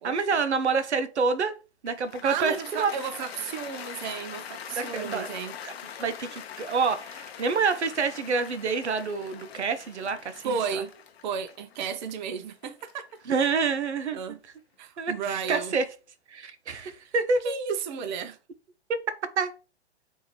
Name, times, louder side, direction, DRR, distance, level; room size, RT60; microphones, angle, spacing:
voice 1, 0.0-1.5 1.8-2.9 4.8-5.3 5.6-5.7 6.0-10.8 13.3-14.4 15.0-15.9 16.3-17.5 19.4-19.5, right 5 dB, 90° right, 0.6 m, -27 dB
Cheering / Applause, 1.9-14.1, left 8 dB, 65° left, 0.7 m, -43 dB
voice 2, 2.2-5.5 10.4-10.9 11.2-13.2 14.1-14.4 14.8-15.7 17.4-18.4, right 6 dB, 45° right, 0.5 m, -33 dB
3.6 x 2.5 x 3.0 m
hypercardioid pair, 120°, 33 cm